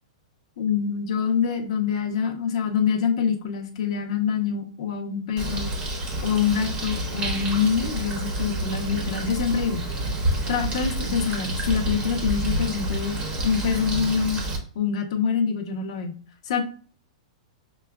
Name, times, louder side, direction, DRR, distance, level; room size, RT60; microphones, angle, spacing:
voice 1, 0.6-5.7 6.2-9.8 10.5-13.1 13.4-14.4 14.7-16.2 16.4-16.6, left 6 dB, 60° left, 4 dB, 0.8 m, -25 dB
Bird, 5.4-14.6, right 1 dB, 25° right, 0.9 m, -29 dB
5.6 x 2.3 x 2.2 m, 0.42 s
hypercardioid pair, 145°, 4 cm